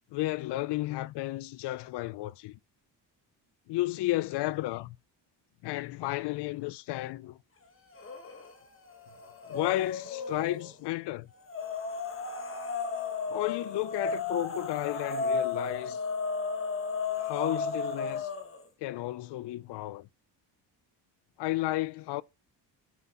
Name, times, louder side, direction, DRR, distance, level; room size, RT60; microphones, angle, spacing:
voice 1, 0.1-2.6 3.7-5.0 5.6-7.4 9.5-11.3 13.3-16.0 17.2-18.3 18.8-20.1 21.4-22.2, left 17 dB, 70° left, 0.6 m, -33 dB
sound 1, 7.9-8.5 8.9-10.7 11.5-18.6, left 4 dB, 30° left, 1.3 m, -34 dB
11.5 x 5.7 x 4.2 m
cardioid pair, 140°, 43 cm